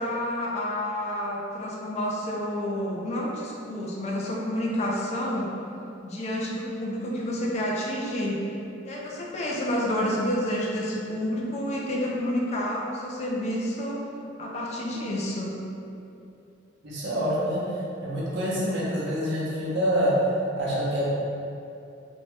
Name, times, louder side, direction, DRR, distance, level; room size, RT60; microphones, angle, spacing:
voice 1, 0.0-5.6 6.0-8.5 8.8-14.1 14.4-15.6, left 1 dB, 35° left, -3 dB, 0.3 m, -29 dB
voice 2, 16.8-17.6 18.0-20.1 20.6-21.1, equal, 60° right, -7 dB, 0.7 m, -26 dB
2.6 x 2.1 x 3.1 m, 2.7 s
head